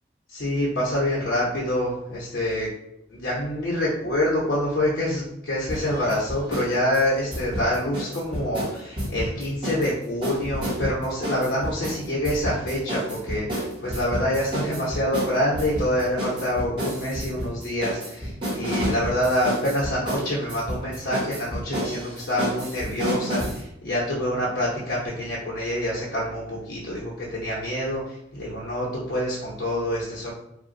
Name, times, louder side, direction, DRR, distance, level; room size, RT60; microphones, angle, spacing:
voice 1, 0.3-2.7 3.1-30.3, left 1 dB, 65° left, -5 dB, 0.8 m, -26 dB
sound 1, 5.7-6.7 6.9-9.9 10.2-23.6, equal, 25° right, 1.2 m, -30 dB
2.4 x 2.2 x 3.7 m, 0.78 s
head